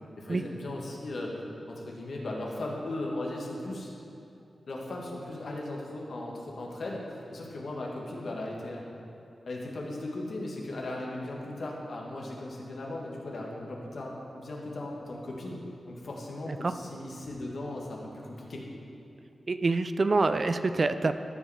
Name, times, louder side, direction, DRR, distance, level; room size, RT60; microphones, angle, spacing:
voice 1, 0.2-1.3 1.7-3.9 4.7-8.8 9.4-15.6 15.9-18.6, left 2 dB, 65° left, -2 dB, 1.6 m, -37 dB
voice 2, 19.5-21.2, right 3 dB, 40° right, 10 dB, 0.3 m, -26 dB
13.0 x 5.1 x 4.9 m, 2.8 s
wide cardioid pair, 105°, 0 cm